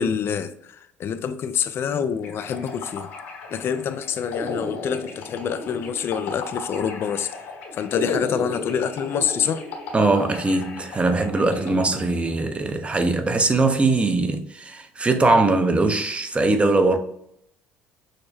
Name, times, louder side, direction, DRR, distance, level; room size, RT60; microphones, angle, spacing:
voice 1, 0.0-3.1 3.5-7.3 7.7-9.6, left 7 dB, 50° left, 0.4 m, -26 dB
sound 1, 2.2-12.7, left 3 dB, 80° left, 1.6 m, -34 dB
voice 2, 9.9-17.0, right 3 dB, 20° right, 0.7 m, -21 dB
6.4 x 2.2 x 2.7 m
hypercardioid pair, 70°, 5 cm